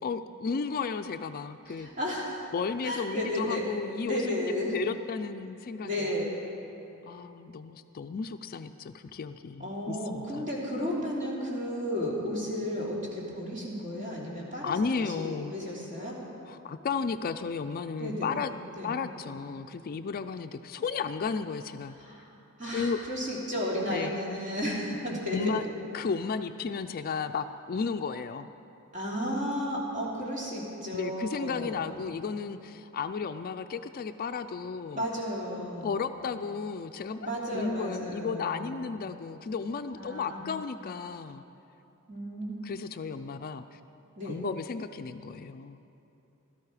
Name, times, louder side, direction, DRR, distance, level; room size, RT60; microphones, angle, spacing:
voice 1, 0.0-1.9 2.5-4.4 4.7-6.1 7.1-10.5 14.6-15.5 16.5-18.5 18.8-22.0 22.7-23.0 23.9-24.1 25.3-25.6 25.9-28.5 30.9-35.0 35.8-41.4 42.6-43.8 44.3-45.8, left 5 dB, 45° left, 9 dB, 0.4 m, -34 dB
voice 2, 1.7-2.4 2.8-3.7 4.0-4.7 5.8-6.3 9.6-16.2 18.0-18.3 18.8-18.9 22.0-22.3 22.6-25.6 28.9-31.9 34.9-36.0 37.2-38.8 39.9-40.4 42.1-42.5 43.3-43.4 44.1-44.4, equal, 35° right, -5 dB, 3.1 m, -33 dB
16.5 x 13.0 x 4.9 m, 2.8 s
head